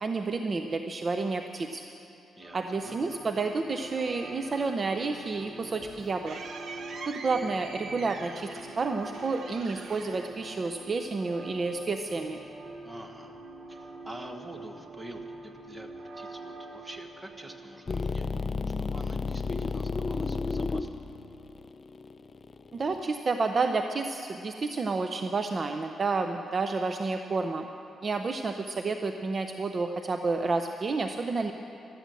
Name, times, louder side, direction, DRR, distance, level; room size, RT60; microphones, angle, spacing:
voice 1, 0.0-1.8 2.5-6.4 7.1-12.4 22.7-27.7 28.0-31.5, right 3 dB, 35° right, 6 dB, 0.5 m, -30 dB
sound 1, 2.4-18.4, right 2 dB, 85° right, 2.7 m, -45 dB
sound 2, 5.3-11.1, right 4 dB, 65° right, 1.0 m, -45 dB
voice 2, 12.8-13.4 13.7-15.9 16.2-18.3 18.8-20.9, right 1 dB, 15° right, 4 dB, 1.2 m, -46 dB
sound 3, 17.9-23.0, left 4 dB, 30° left, 0.5 m, -32 dB
13.5 x 12.5 x 7.6 m, 2.8 s
wide cardioid pair, 145°, 0 cm